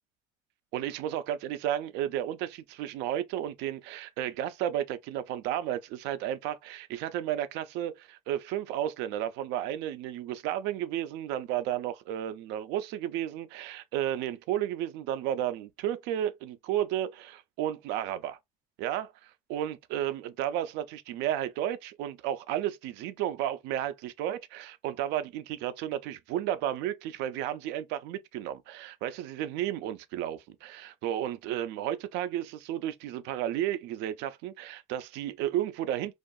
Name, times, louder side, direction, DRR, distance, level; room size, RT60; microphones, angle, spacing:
voice 1, 0.7-18.4 18.8-36.2, right 11 dB, 85° right, 0.4 m, -33 dB
2.6 x 2.4 x 2.3 m
cardioid pair, 115°, 18 cm